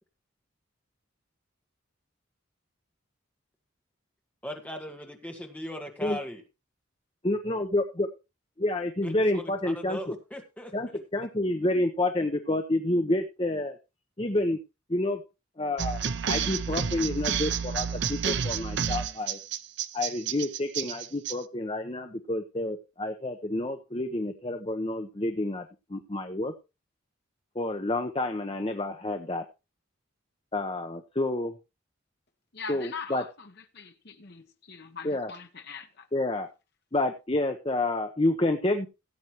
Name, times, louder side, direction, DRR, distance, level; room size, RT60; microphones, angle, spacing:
voice 1, 4.4-6.4 9.0-10.7, left 1 dB, 5° left, 1.8 m, -39 dB
voice 2, 7.2-8.1 8.6-10.1 10.7-13.8 14.2-14.6 14.9-15.2 15.6-19.4 19.9-26.5 27.5-29.4 30.5-31.5 32.7-33.2 35.0-35.3 36.1-36.5 36.9-38.9, left 1 dB, 25° left, 0.9 m, -29 dB
sound 1, 15.8-21.3, right 7 dB, 55° right, 0.6 m, -30 dB
voice 3, 32.5-36.1, left 5 dB, 50° left, 1.0 m, -42 dB
16.5 x 8.1 x 3.0 m
head